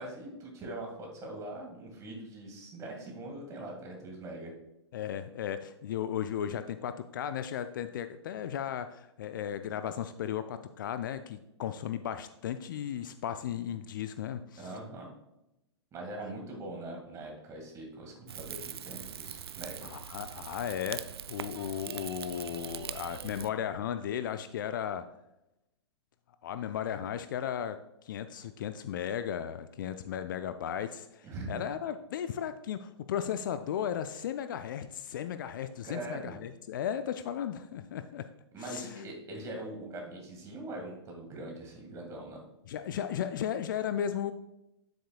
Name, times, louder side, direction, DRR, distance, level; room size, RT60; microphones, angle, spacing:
voice 1, 0.0-4.5 14.6-15.1 15.9-19.9 31.2-31.7 35.8-36.3 38.5-42.4, right 2 dB, 20° right, 1 dB, 2.1 m, -42 dB
voice 2, 4.9-14.7 19.8-25.0 26.4-27.8 28.0-38.2 38.6-39.0 42.7-44.3, left 9 dB, 45° left, 10 dB, 0.4 m, -35 dB
Rain / Fire, 18.3-23.5, right 9 dB, 60° right, 0.4 m, -42 dB
9.3 x 7.9 x 2.3 m, 0.89 s
figure-of-eight pair, 110°, 14 cm